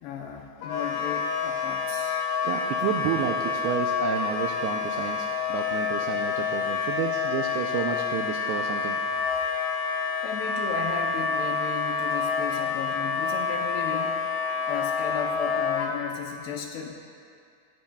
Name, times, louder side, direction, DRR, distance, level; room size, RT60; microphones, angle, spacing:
voice 1, 0.0-2.2 10.2-14.2 14.7-17.0, left 7 dB, 75° left, 2 dB, 2.6 m, -35 dB
Wind instrument woodwind instrument, 0.6-15.9, left 5 dB, 60° left, 3.0 m, -28 dB
voice 2, 2.4-9.0, right 9 dB, 85° right, 2 dB, 2.3 m, -31 dB
17.5 x 14.5 x 2.3 m, 2.2 s
omnidirectional pair, 5.3 m